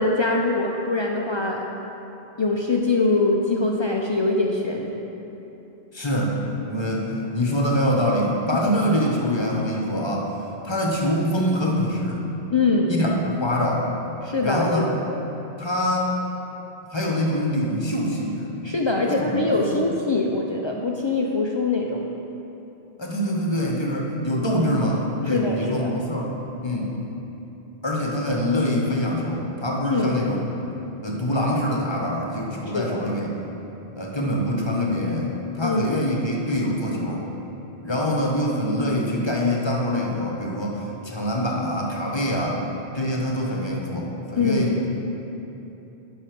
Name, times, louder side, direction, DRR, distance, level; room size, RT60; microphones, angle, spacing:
voice 1, 0.0-1.7 2.4-4.9 8.5-8.6 12.5-12.9 14.2-14.9 18.6-22.1 25.3-25.9 29.8-30.1 32.7-33.0 35.6-36.0 44.4-44.7, left 3 dB, 45° left, -1 dB, 0.3 m, -23 dB
voice 2, 5.9-10.3 10.6-12.2 12.9-13.9 14.4-14.9 15.6-16.1 16.9-18.5 19.1-19.4 19.7-19.8 23.0-26.3 26.6-26.9 27.8-30.4 31.0-33.3 34.0-37.2 37.8-42.6 42.9-44.7, equal, 25° left, -2 dB, 0.9 m, -24 dB
7.5 x 5.4 x 5.1 m, 3.0 s
omnidirectional pair, 1.1 m